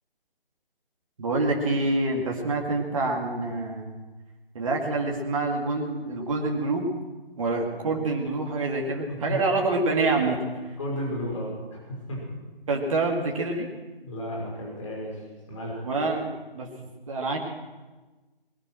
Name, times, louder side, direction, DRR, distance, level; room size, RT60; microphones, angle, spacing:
voice 1, 1.2-3.9 4.5-6.9 7.4-10.7 12.7-13.7 15.8-16.7 17.1-17.4, right 3 dB, 35° right, 0 dB, 2.1 m, -26 dB
voice 2, 9.1-9.4 10.8-12.2 14.0-15.8, equal, 35° left, -2 dB, 5.9 m, -33 dB
20.5 x 11.0 x 6.2 m, 1.2 s
figure-of-eight pair, 150°, 29 cm